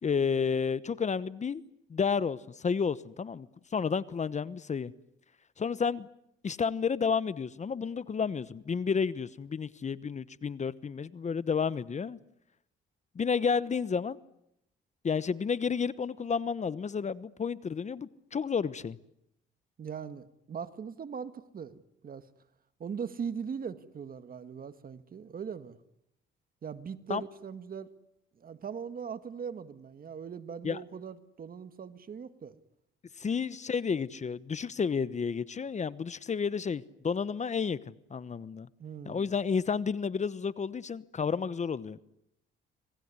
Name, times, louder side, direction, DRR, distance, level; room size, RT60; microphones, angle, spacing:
voice 1, 0.0-1.6 1.9-3.5 3.7-4.9 5.6-6.1 6.4-12.2 13.1-14.2 15.0-19.0 27.1-27.2 30.6-30.8 33.2-38.7 39.1-42.0, left 6 dB, 35° left, 17 dB, 1.0 m, -31 dB
voice 2, 19.8-21.8 22.0-22.2 22.8-25.8 26.6-27.9 28.4-32.5 38.8-39.3, right 7 dB, 45° right, 12 dB, 1.8 m, -40 dB
27.0 x 20.0 x 9.7 m, 0.79 s
cardioid pair, 90°, 20 cm